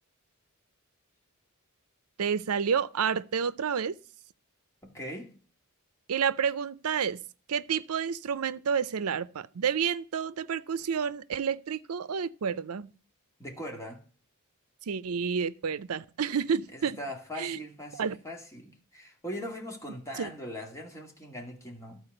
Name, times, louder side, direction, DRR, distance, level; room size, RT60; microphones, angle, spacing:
voice 1, 2.2-3.9 6.1-7.2 7.5-12.9 14.9-17.0 17.4-17.6 17.9-18.1 20.2-20.3, right 7 dB, 80° right, 0.5 m, -30 dB
voice 2, 4.8-5.3 13.4-14.0 16.7-22.0, equal, 15° left, 2.2 m, -40 dB
13.0 x 4.5 x 7.8 m
head